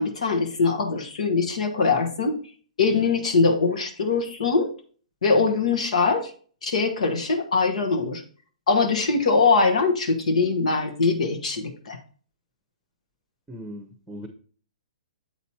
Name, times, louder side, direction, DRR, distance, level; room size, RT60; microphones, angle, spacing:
voice 1, 0.0-2.4 2.8-4.7 5.2-6.3 6.6-8.2 8.7-12.0, left 4 dB, 70° left, 4 dB, 1.2 m, -22 dB
voice 2, 13.5-14.3, equal, 10° right, 5 dB, 0.9 m, -38 dB
7.9 x 4.1 x 4.2 m, 0.43 s
hypercardioid pair, 125°, 4 cm